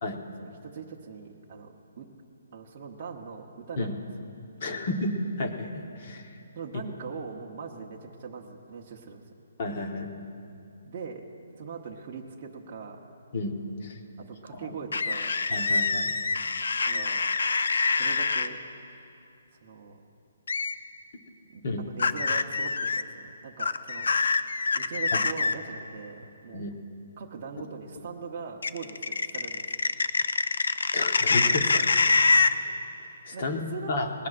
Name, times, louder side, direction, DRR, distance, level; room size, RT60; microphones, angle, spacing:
voice 1, 0.4-2.1 2.5-4.0 4.6-4.8 6.6-9.2 10.9-11.3 11.6-13.0 14.2-15.3 16.8-17.3 18.0-18.6 19.6-20.0 21.5-24.1 24.7-26.6 27.2-29.7 33.3-33.4 33.7-33.9, right 5 dB, 25° right, -1 dB, 0.8 m, -41 dB
voice 2, 4.6-5.1 5.4-6.3 9.6-10.1 13.3-13.5 13.8-14.0 14.5-14.7 15.5-16.1 21.6-21.8 26.5-26.7 30.9-31.9 32.6-32.7 33.0-34.1, left 2 dB, 35° left, 3 dB, 1.1 m, -32 dB
sound 1, 14.9-18.5 20.5-20.7 22.0-23.0 23.6-25.5 28.6-32.5, left 4 dB, 80° left, 0.6 m, -25 dB
20.0 x 17.0 x 2.5 m, 2.6 s
hypercardioid pair, 175°, 0 cm